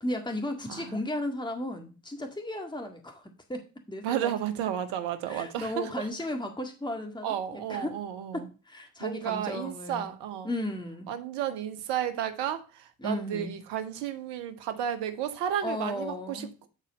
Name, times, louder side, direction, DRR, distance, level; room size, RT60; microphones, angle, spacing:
voice 1, 0.0-4.3 5.3-8.0 8.3-10.1 10.4-11.1 13.0-13.5 15.6-16.5, left 1 dB, 10° left, 1.8 m, -35 dB
voice 2, 4.0-5.9 7.2-8.5 9.0-10.5 11.1-16.7, right 10 dB, 80° right, 1.1 m, -32 dB
10.0 x 4.1 x 5.1 m
hypercardioid pair, 40°, 41 cm